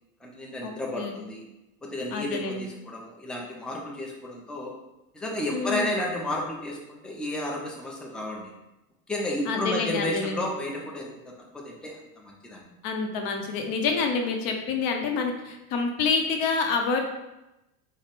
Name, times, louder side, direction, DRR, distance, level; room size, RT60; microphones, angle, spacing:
voice 1, 0.2-1.4 1.8-4.7 5.1-8.5 9.1-12.7, left 1 dB, ahead, -2 dB, 0.5 m, -32 dB
voice 2, 2.1-2.7 5.5-5.9 9.5-10.5 12.8-17.0, left 4 dB, 50° left, 3 dB, 0.7 m, -27 dB
3.9 x 2.1 x 3.5 m, 0.95 s
hypercardioid pair, 95°, 45 cm